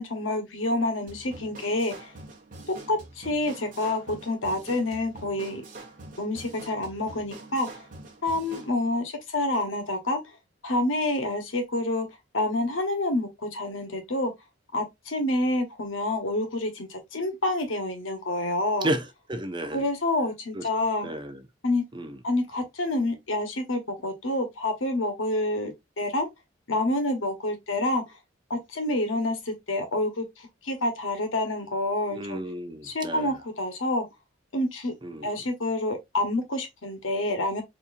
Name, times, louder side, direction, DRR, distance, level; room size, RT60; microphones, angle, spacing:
voice 1, 0.0-2.1 2.7-5.6 6.2-7.7 8.2-10.2 10.6-12.1 12.3-14.3 14.7-18.9 19.7-21.1 21.6-21.8 22.2-26.3 26.7-28.0 28.5-32.4 32.8-34.1 34.5-34.9 35.2-37.6, left 2 dB, 85° left, 1.1 m, -28 dB
sound 1, 1.1-8.7, right 2 dB, 45° right, 1.0 m, -45 dB
voice 2, 18.8-19.8 20.5-20.7 21.0-21.4 21.9-22.2 32.1-33.3 35.0-35.3, right 1 dB, 25° right, 0.5 m, -32 dB
4.1 x 2.8 x 2.5 m
head